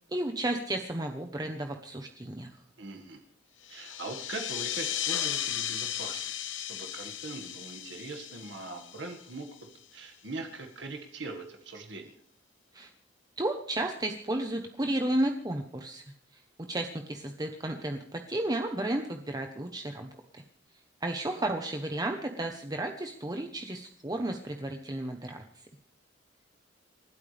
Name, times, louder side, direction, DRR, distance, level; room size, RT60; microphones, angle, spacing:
voice 1, 0.1-2.5 12.7-12.9 13.4-16.0 16.7-20.4 21.0-25.4, right 1 dB, 20° right, 4 dB, 1.1 m, -33 dB
voice 2, 2.8-3.2 3.7-6.3 6.6-9.5 9.9-12.1, right 3 dB, 65° right, 3 dB, 2.0 m, -41 dB
sound 1, 3.6-9.8, left 10 dB, 75° left, 1.2 m, -35 dB
28.5 x 13.0 x 3.5 m, 0.67 s
head